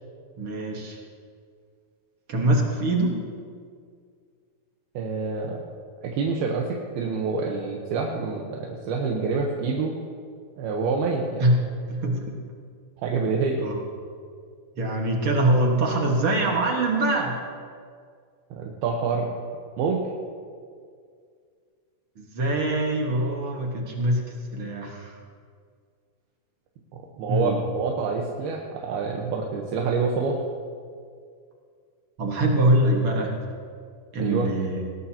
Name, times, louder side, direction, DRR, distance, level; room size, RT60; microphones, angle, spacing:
voice 1, 0.4-1.0 2.3-3.2 11.4-11.6 11.9-12.4 13.6-13.8 14.8-17.4 22.2-24.2 24.5-25.2 27.3-27.6 32.2-33.4 34.1-34.8, right 1 dB, 50° right, 0 dB, 1.8 m, -23 dB
voice 2, 4.9-5.6 6.0-9.9 10.6-11.5 13.0-13.6 18.5-19.4 19.8-20.0 27.2-30.4 34.2-34.5, right 4 dB, 85° right, -1 dB, 3.1 m, -27 dB
19.5 x 18.5 x 2.9 m, 2.1 s
omnidirectional pair, 4.3 m